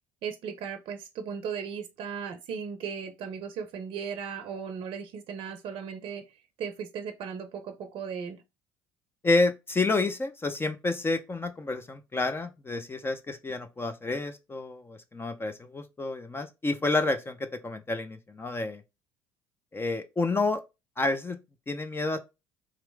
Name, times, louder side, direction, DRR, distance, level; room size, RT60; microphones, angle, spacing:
voice 1, 0.2-6.3 6.6-8.4, right 7 dB, 60° right, 0.6 m, -36 dB
voice 2, 9.2-18.8 19.7-20.6 21.0-21.4 21.7-22.2, left 3 dB, 20° left, 0.6 m, -29 dB
3.8 x 3.0 x 3.4 m
hypercardioid pair, 70°, 10 cm